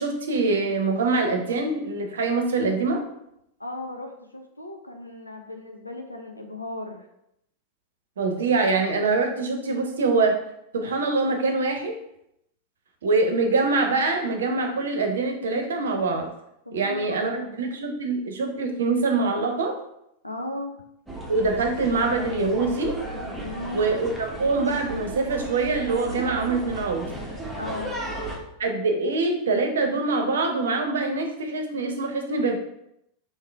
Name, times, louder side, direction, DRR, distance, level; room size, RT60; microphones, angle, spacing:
voice 1, 0.0-3.0 8.2-10.4 10.7-12.0 13.0-16.3 16.7-19.7 21.3-23.0 23.7-27.1 28.6-32.6, right 3 dB, 65° right, 4 dB, 0.7 m, -24 dB
voice 2, 3.6-7.1 16.7-17.6 20.2-20.7 23.4-23.9 27.5-28.0, left 2 dB, 85° left, 3 dB, 0.6 m, -36 dB
sound 1, 21.1-28.4, right 2 dB, 10° right, 1.0 m, -35 dB
3.7 x 2.8 x 4.5 m, 0.79 s
figure-of-eight pair, 90°, 0 cm